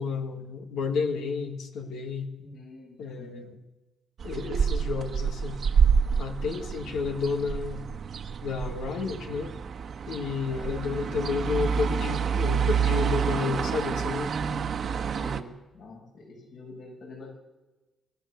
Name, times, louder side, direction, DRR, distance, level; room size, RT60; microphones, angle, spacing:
voice 1, 0.0-2.3 3.0-3.6 4.2-5.6 6.2-7.8 8.4-9.6 10.1-14.4, left 5 dB, 80° left, 4 dB, 1.9 m, -31 dB
voice 2, 2.4-3.5 6.4-6.5 10.4-10.7 14.8-17.3, left 2 dB, 65° left, -1 dB, 7.8 m, -47 dB
sound 1, 4.2-15.4, right 7 dB, 55° right, 1.3 m, -28 dB
25.5 x 14.5 x 7.0 m, 1.1 s
cardioid pair, 90°, 0 cm